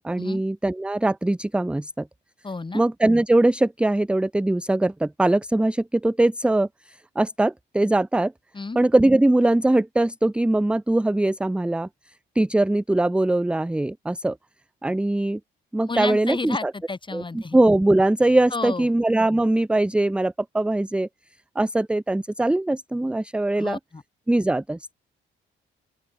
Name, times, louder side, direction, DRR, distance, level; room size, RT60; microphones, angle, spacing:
voice 1, 0.0-2.1 2.7-6.7 7.2-8.3 8.8-11.9 12.4-14.4 14.8-15.4 15.7-16.7 17.1-21.1 21.6-23.8 24.3-24.9, right 2 dB, 5° right, 0.5 m, -21 dB
voice 2, 2.4-2.8 8.5-8.8 15.9-17.6 18.5-18.9 23.6-24.0, left 3 dB, 25° left, 6.3 m, -31 dB
open air
cardioid pair, 90°, 20 cm